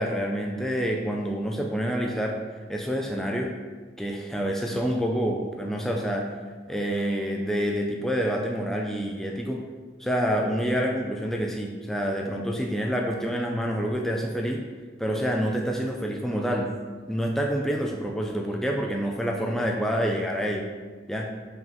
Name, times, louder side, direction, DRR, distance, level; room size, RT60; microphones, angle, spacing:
voice 1, 0.0-2.4 2.7-3.5 4.0-6.3 6.7-9.6 10.0-14.6 15.0-16.7 17.1-20.7 21.1-21.3, equal, ahead, 0 dB, 0.4 m, -27 dB
5.3 x 5.2 x 3.7 m, 1.4 s
head